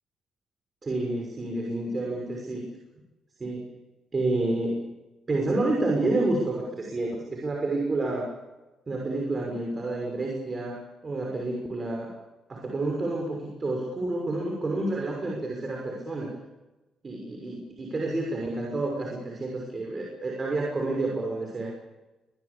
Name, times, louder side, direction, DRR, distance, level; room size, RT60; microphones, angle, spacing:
voice 1, 0.8-2.6 3.4-3.7 4.1-4.9 5.3-8.3 8.9-12.1 12.5-16.3 17.0-21.7, right 2 dB, 30° right, 0 dB, 6.3 m, -29 dB
24.5 x 20.0 x 8.6 m, 1.1 s
cardioid pair, 90°, 0 cm